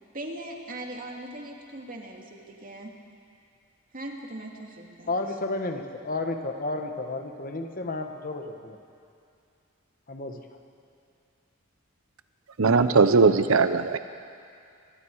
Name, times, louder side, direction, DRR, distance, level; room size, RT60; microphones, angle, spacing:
voice 1, 0.0-2.9 3.9-5.2, right 1 dB, 45° right, 1 dB, 2.4 m, -40 dB
voice 2, 5.1-8.8 10.1-10.4, left 2 dB, 45° left, 5 dB, 1.4 m, -32 dB
voice 3, 12.6-14.0, right 4 dB, 90° right, 10 dB, 0.8 m, -19 dB
24.5 x 22.0 x 4.8 m, 2.4 s
head